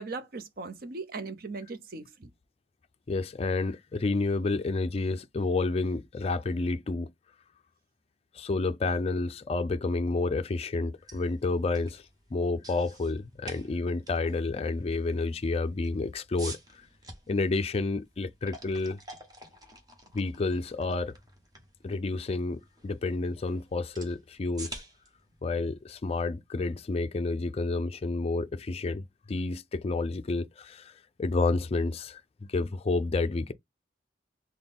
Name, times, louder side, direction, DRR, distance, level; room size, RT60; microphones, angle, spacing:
voice 1, 0.0-2.3, right 3 dB, 55° right, 0.7 m, -38 dB
voice 2, 3.1-7.1 8.3-12.0 12.3-16.8 17.3-19.0 20.1-21.2 21.8-24.8 25.4-32.2 32.5-33.5, left 3 dB, 35° left, 0.4 m, -30 dB
sound 1, 10.9-26.8, right 2 dB, 20° right, 1.1 m, -50 dB
4.0 x 2.2 x 3.5 m
head